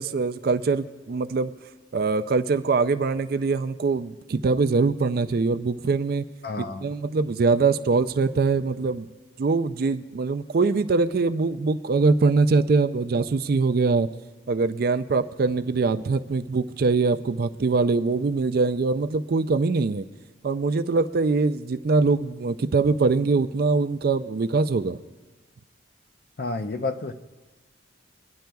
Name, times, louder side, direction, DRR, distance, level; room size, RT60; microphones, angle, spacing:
voice 1, 0.0-1.5 1.9-6.2 6.6-9.1 9.4-14.1 14.5-20.0 20.4-25.0, right 4 dB, 50° right, 11 dB, 0.4 m, -23 dB
voice 2, 6.4-6.9 26.4-27.1, left 3 dB, 50° left, 7 dB, 0.6 m, -30 dB
24.0 x 10.5 x 2.3 m, 1.3 s
head